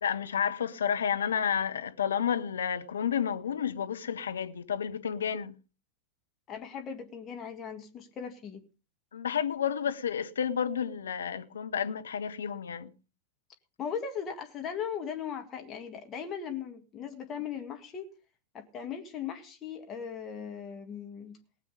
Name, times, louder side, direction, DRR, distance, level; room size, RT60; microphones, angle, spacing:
voice 1, 0.0-5.6 9.1-12.9, left 8 dB, 65° left, 0.9 m, -31 dB
voice 2, 6.5-8.6 13.8-18.1 18.5-21.4, left 7 dB, 30° left, 1.8 m, -38 dB
19.5 x 7.7 x 5.3 m
figure-of-eight pair, 90°, 0 cm